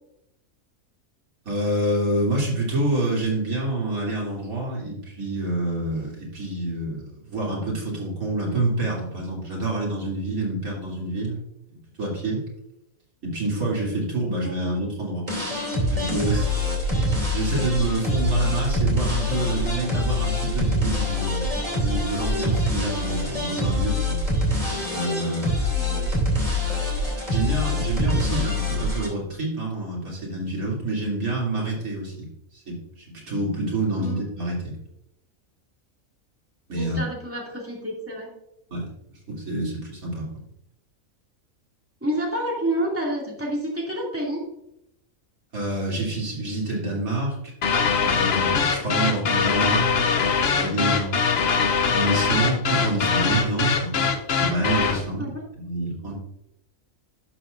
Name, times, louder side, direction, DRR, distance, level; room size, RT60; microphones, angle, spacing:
voice 1, 1.5-11.4 12.0-12.4 13.2-15.2 15.9-17.0 17.3-21.5 21.8-24.2 24.9-25.5 27.3-32.3 32.5-34.8 36.7-37.0 38.7-38.9 39.3-40.3 45.5-47.5 47.9-51.2 51.9-56.1, right 2 dB, 90° right, -4 dB, 3.5 m, -27 dB
voice 2, 14.4-14.8 21.6-21.7 25.6-26.2 34.0-34.2 36.7-38.3 42.0-44.4 55.2-55.4, right 1 dB, 10° right, -3 dB, 2.5 m, -29 dB
sound 1, 15.3-29.1, left 1 dB, 30° right, 2.9 m, -25 dB
sound 2, 47.6-55.1, left 5 dB, 55° left, 0.9 m, -22 dB
11.0 x 7.4 x 2.6 m, 0.80 s
omnidirectional pair, 1.4 m